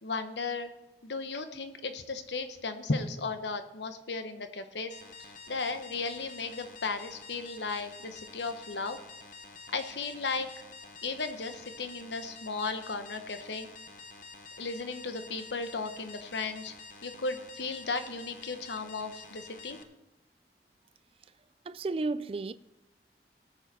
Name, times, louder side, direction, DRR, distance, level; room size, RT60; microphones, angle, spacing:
voice 1, 0.0-0.7 1.0-9.0 9.7-10.5 11.0-13.7 14.6-16.7 17.0-19.8, left 3 dB, 85° left, 1.1 m, -35 dB
sound 1, 4.9-19.8, left 4 dB, 45° left, 0.8 m, -49 dB
voice 2, 21.7-22.5, right 3 dB, 30° right, 0.3 m, -32 dB
17.5 x 7.1 x 4.2 m
head